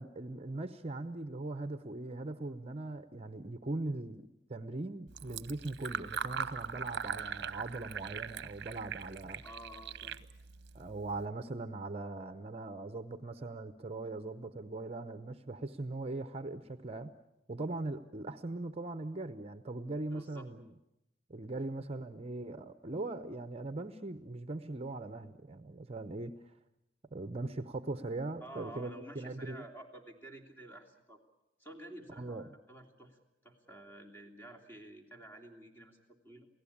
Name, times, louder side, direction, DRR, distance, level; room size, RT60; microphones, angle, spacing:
voice 1, 0.0-9.4 10.7-17.1 17.5-20.7 21.3-26.5 27.1-29.6 32.2-32.5, right 2 dB, 35° right, 10 dB, 0.8 m, -40 dB
Fill (with liquid), 5.1-11.3, right 6 dB, 60° right, 0.8 m, -41 dB
voice 2, 9.4-10.3 20.1-20.5 28.4-31.2 31.6-36.5, right 1 dB, 10° left, 2 dB, 3.2 m, -51 dB
28.0 x 17.5 x 8.6 m, 0.90 s
head